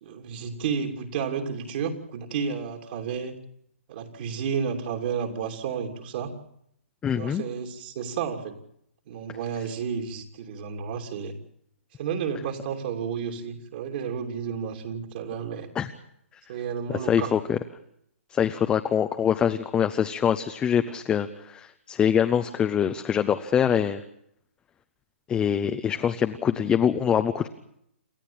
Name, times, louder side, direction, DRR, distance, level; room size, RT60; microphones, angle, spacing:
voice 1, 0.0-3.4 3.9-6.3 7.1-8.5 9.1-11.3 12.0-15.7 16.5-17.3, right 6 dB, 45° right, 3 dB, 2.9 m, -31 dB
voice 2, 7.0-7.4 15.7-15.9 16.9-17.6 18.3-24.0 25.3-27.5, left 8 dB, 15° left, 8 dB, 0.8 m, -24 dB
28.5 x 13.0 x 8.7 m, 0.74 s
hypercardioid pair, 150°, 7 cm